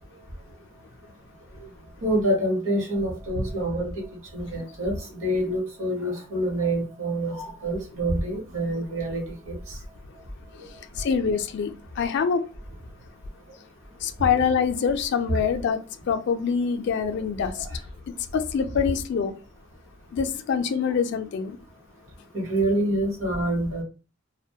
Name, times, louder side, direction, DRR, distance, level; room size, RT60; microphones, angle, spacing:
voice 1, 2.0-3.9 4.3-4.9 5.2-9.5 22.3-23.8, right 1 dB, 70° right, 0.9 m, -26 dB
voice 2, 11.0-12.5 14.0-17.8 18.3-19.3 20.1-21.6, left 6 dB, 55° left, 0.3 m, -25 dB
2.7 x 2.1 x 2.2 m
head